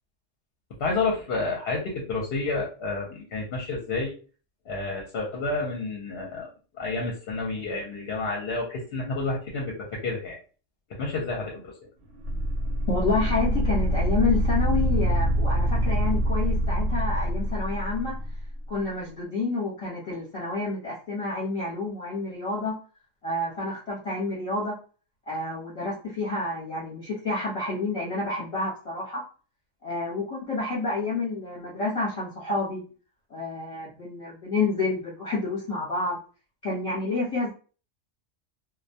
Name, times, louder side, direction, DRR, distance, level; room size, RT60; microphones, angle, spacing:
voice 1, 0.8-4.1 4.7-10.4 10.9-11.8, left 3 dB, 60° left, -2 dB, 0.8 m, -30 dB
sound 1, 12.2-18.4, equal, 85° right, 1.0 m, -25 dB
voice 2, 12.9-18.2 18.7-22.8 23.2-24.7 25.3-29.2 29.8-32.8 33.3-36.2 36.6-37.5, left 3 dB, 35° left, -6 dB, 0.7 m, -29 dB
2.2 x 2.1 x 2.6 m, 0.38 s
omnidirectional pair, 1.3 m